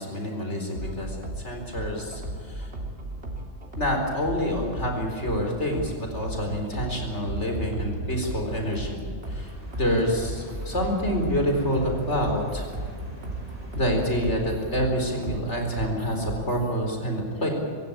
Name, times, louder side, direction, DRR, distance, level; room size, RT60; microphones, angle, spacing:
voice 1, 0.0-2.7 3.8-9.0 9.3-9.5 9.8-12.7 13.8-17.5, equal, 75° left, 2 dB, 4.6 m, -27 dB
sound 1, 0.7-16.7, right 1 dB, 65° right, 3.4 m, -35 dB
sound 2, 9.2-14.7, left 1 dB, 20° right, 6.0 m, -41 dB
26.0 x 15.5 x 8.8 m, 2.2 s
omnidirectional pair, 1.2 m